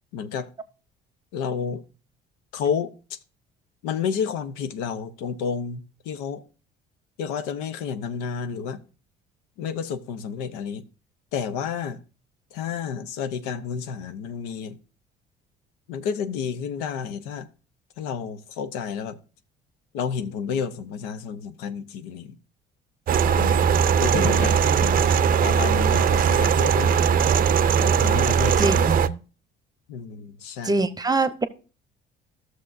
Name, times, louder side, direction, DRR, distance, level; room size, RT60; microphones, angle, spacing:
voice 1, 0.1-0.5 1.3-1.8 2.5-3.2 3.8-6.4 7.2-8.8 9.6-10.8 11.3-12.0 12.5-14.8 15.9-17.5 18.0-19.2 19.9-22.4 23.3-23.7 24.0-27.0 27.8-28.9 29.9-30.8, left 7 dB, 90° left, 0.7 m, -30 dB
sound 1, 23.1-29.1, right 7 dB, 45° right, 0.5 m, -20 dB
voice 2, 28.6-29.2 30.6-31.5, right 3 dB, 20° right, 0.8 m, -24 dB
13.5 x 6.4 x 2.6 m
supercardioid pair, 85°, 21 cm